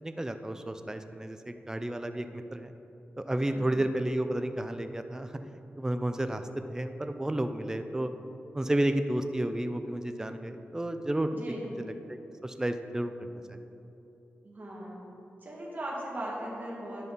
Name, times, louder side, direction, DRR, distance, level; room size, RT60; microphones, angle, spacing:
voice 1, 0.0-2.7 3.3-5.4 5.8-6.4 6.7-8.1 8.5-11.3 12.1-13.6, right 1 dB, 15° right, 8 dB, 0.4 m, -31 dB
voice 2, 11.3-11.7 14.4-15.0 15.4-17.1, right 1 dB, 45° right, -5 dB, 1.9 m, -38 dB
11.0 x 5.4 x 4.0 m, 3.0 s
wide cardioid pair, 100°, 4 cm